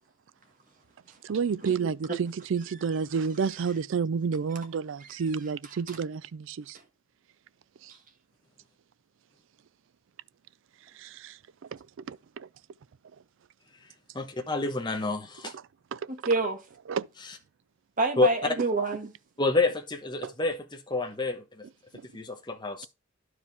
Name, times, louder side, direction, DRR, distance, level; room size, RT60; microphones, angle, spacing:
voice 1, 1.3-6.8 11.0-11.4 12.1-12.5 15.9-16.0 16.9-17.1 20.2-20.3, right 6 dB, 60° right, 0.4 m, -30 dB
voice 2, 5.6-6.0 16.1-16.6 18.0-19.1, right 3 dB, 40° right, 1.5 m, -28 dB
voice 3, 14.1-15.5 17.2-17.4 18.2-18.3 19.4-21.6 22.1-22.9, left 3 dB, 20° left, 1.0 m, -28 dB
11.5 x 4.9 x 3.4 m
head